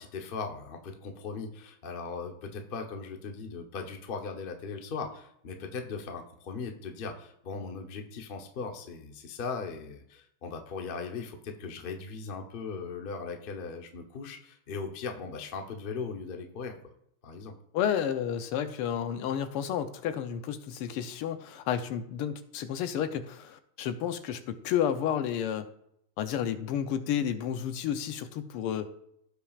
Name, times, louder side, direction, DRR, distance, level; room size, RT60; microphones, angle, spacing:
voice 1, 0.0-16.9 17.2-17.5, left 4 dB, 65° left, 4 dB, 0.5 m, -38 dB
voice 2, 17.7-25.7 26.2-28.9, left 9 dB, 90° left, 10 dB, 1.7 m, -31 dB
16.0 x 5.9 x 2.4 m, 0.74 s
omnidirectional pair, 2.4 m